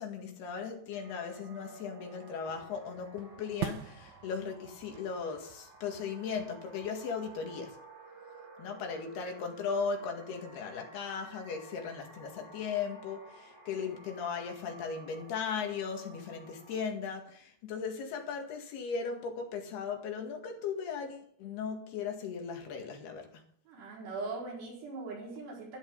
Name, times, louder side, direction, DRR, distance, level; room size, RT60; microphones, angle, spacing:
voice 1, 0.0-7.8 8.6-23.4, left 6 dB, 75° left, 3 dB, 4.0 m, -37 dB
sound 1, 0.9-16.8, right 3 dB, 40° right, 6.8 m, -54 dB
sound 2, 2.5-7.8, right 9 dB, 70° right, 1.8 m, -45 dB
voice 2, 23.7-25.8, right 3 dB, 85° right, -3 dB, 6.6 m, -40 dB
13.0 x 11.0 x 5.3 m, 0.62 s
omnidirectional pair, 4.6 m